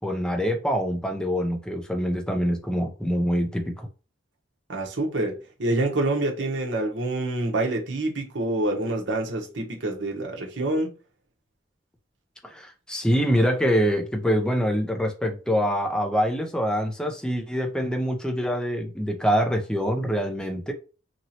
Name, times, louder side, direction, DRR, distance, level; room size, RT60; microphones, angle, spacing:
voice 1, 0.0-3.9 12.4-20.7, equal, 5° left, 0.5 m, -25 dB
voice 2, 4.7-10.9, right 2 dB, 65° right, 0.8 m, -27 dB
3.0 x 2.7 x 2.8 m
head